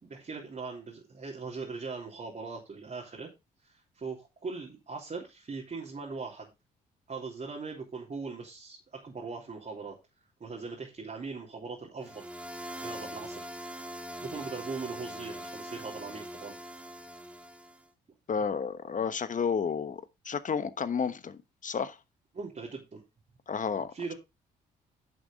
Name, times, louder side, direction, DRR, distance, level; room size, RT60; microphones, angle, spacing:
voice 1, 0.0-3.3 3.6-6.5 7.1-10.0 10.4-12.2 12.8-13.4 13.7-16.5 22.3-23.0 23.9-24.1, right 4 dB, 40° right, 3.2 m, -40 dB
sound 1, 12.0-17.8, equal, 5° right, 1.3 m, -42 dB
voice 2, 18.3-22.0 23.5-24.1, left 6 dB, 40° left, 1.2 m, -32 dB
10.5 x 6.2 x 3.6 m
hypercardioid pair, 50°, 19 cm